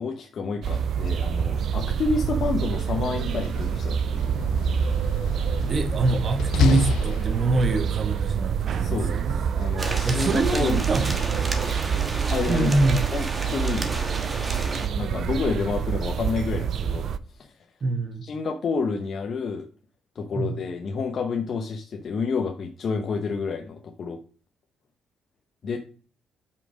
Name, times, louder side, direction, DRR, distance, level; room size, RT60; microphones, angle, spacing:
voice 1, 0.0-4.4 8.7-11.2 12.3-12.7 13.0-13.9 14.9-17.6 18.2-19.7 20.2-24.2 25.6-25.8, left 4 dB, 50° left, 0.7 m, -29 dB
sound 1, 0.6-17.2, right 7 dB, 65° right, 0.5 m, -27 dB
Slam, 3.1-7.8, left 10 dB, 80° left, 0.4 m, -31 dB
voice 2, 5.7-9.4 10.0-11.7 12.5-13.0 17.8-18.2 20.3-20.6, right 2 dB, 45° right, 1.1 m, -25 dB
sound 2, 9.8-14.9, right 2 dB, 25° right, 1.3 m, -32 dB
5.8 x 4.9 x 6.2 m
cardioid pair, 95°, 0 cm